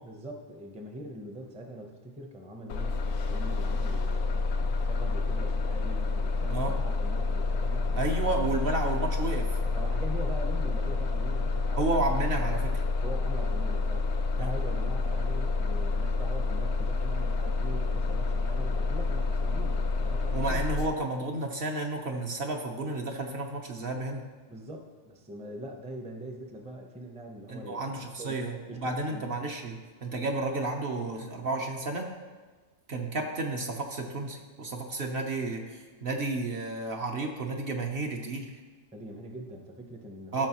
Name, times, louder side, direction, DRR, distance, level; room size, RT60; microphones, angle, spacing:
voice 1, 0.0-8.1 9.6-11.9 13.0-14.1 14.4-20.6 24.5-27.8 28.2-29.2 38.9-40.5, right 1 dB, 5° right, 2 dB, 0.6 m, -43 dB
Bus, 2.7-20.9, left 3 dB, 70° left, 0.9 m, -28 dB
voice 2, 7.9-9.5 11.8-12.8 14.4-14.5 20.3-24.3 27.5-32.1 32.9-38.6 40.3-40.5, right 2 dB, 55° right, 2 dB, 0.9 m, -32 dB
13.0 x 6.2 x 3.0 m, 1.4 s
omnidirectional pair, 1.3 m